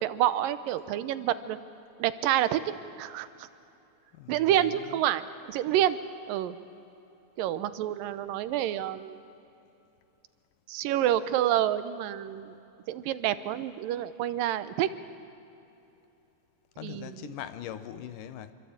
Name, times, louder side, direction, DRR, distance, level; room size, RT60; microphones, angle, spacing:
voice 1, 0.0-1.6 2.0-2.6 3.0-3.5 4.3-5.2 5.5-6.0 6.3-6.6 7.4-9.2 10.7-12.6 12.9-14.9 16.8-17.2, right 12 dB, 90° right, 13 dB, 2.6 m, -28 dB
voice 2, 4.1-5.0 16.8-18.5, left 10 dB, 75° left, 11 dB, 2.6 m, -41 dB
26.5 x 23.5 x 8.8 m, 2.8 s
omnidirectional pair, 3.9 m